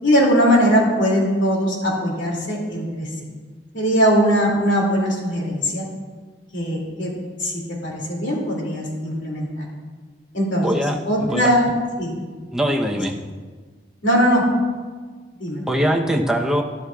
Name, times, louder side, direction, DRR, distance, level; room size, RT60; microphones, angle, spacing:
voice 1, 0.0-3.1 3.7-5.9 6.5-7.1 7.4-9.7 10.3-10.7 11.1-11.7 12.0-12.2 14.0-14.4 15.4-15.9, equal, 80° left, -2 dB, 2.4 m, -20 dB
voice 2, 10.6-11.5 12.5-13.2 15.7-16.6, equal, 5° right, 1 dB, 0.7 m, -22 dB
13.0 x 11.0 x 2.3 m, 1.4 s
head